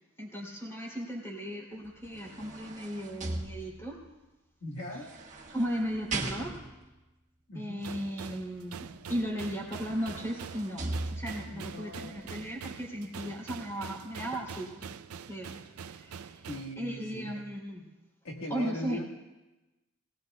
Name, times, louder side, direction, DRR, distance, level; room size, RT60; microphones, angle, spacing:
voice 1, 0.2-4.0 5.5-6.7 7.5-14.9 15.3-16.4 16.8-17.8 18.5-19.0, equal, 10° left, -2 dB, 2.8 m, -36 dB
sound 1, 1.8-4.1 4.9-6.9 9.1-9.2 9.6-11.6 12.2-12.3, right 2 dB, 35° right, 1.4 m, -39 dB
voice 2, 4.6-5.1 7.5-7.8 11.5-12.3 13.2-13.3 16.5-17.4 18.2-19.0, left 1 dB, 60° left, -1 dB, 1.5 m, -40 dB
sound 2, 7.8-16.7, right 6 dB, 75° right, 0.5 m, -44 dB
21.5 x 18.5 x 2.3 m, 1.1 s
head